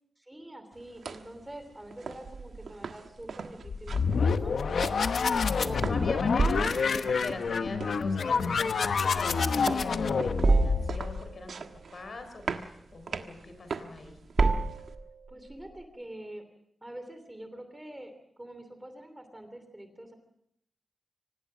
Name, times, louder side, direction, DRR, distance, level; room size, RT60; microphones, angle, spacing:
voice 1, 0.2-5.0 5.6-6.5 15.3-16.4 16.8-20.1, right 1 dB, 10° right, 8 dB, 3.0 m, -45 dB
sound 1, 0.7-14.9, right 5 dB, 85° right, 1.4 m, -42 dB
sound 2, 3.1-15.8, right 3 dB, 45° right, 1.7 m, -32 dB
sound 3, 3.7-11.3, left 5 dB, 85° left, 1.0 m, -28 dB
voice 2, 5.6-14.3, left 3 dB, 55° left, 8 dB, 4.4 m, -41 dB
25.0 x 18.5 x 6.2 m, 0.74 s
wide cardioid pair, 145°, 0 cm